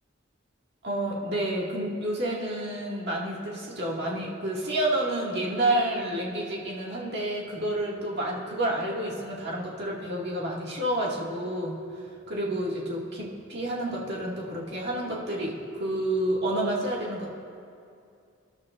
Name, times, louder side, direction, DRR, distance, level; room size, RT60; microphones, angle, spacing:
voice 1, 0.8-11.8 12.3-17.3, right 1 dB, 55° right, -4 dB, 2.2 m, -29 dB
24.5 x 11.5 x 2.6 m, 2.4 s
head